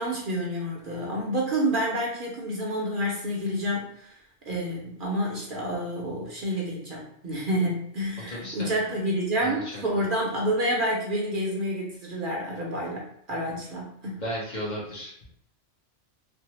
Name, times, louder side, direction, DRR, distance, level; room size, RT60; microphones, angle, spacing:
voice 1, 0.0-4.1 4.5-14.2, equal, 55° right, -2 dB, 0.7 m, -29 dB
voice 2, 8.3-8.8 9.4-9.8 13.5-13.6 14.2-15.3, equal, 45° left, -5 dB, 0.9 m, -35 dB
3.4 x 2.0 x 3.0 m, 0.70 s
omnidirectional pair, 1.2 m